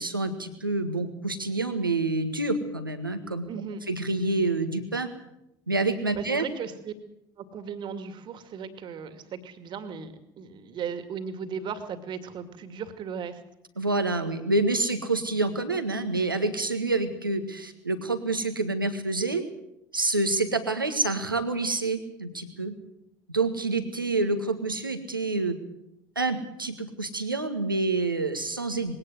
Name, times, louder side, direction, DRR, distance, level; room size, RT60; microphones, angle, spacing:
voice 1, 0.0-3.5 3.9-5.1 5.7-6.4 13.8-19.4 19.9-22.8 23.3-25.6 26.2-28.9, right 2 dB, 85° right, 8 dB, 1.8 m, -27 dB
voice 2, 3.5-3.8 6.1-6.9 7.4-13.4, right 6 dB, 45° right, 9 dB, 2.5 m, -36 dB
21.0 x 17.5 x 8.0 m, 0.83 s
figure-of-eight pair, 60°, 11 cm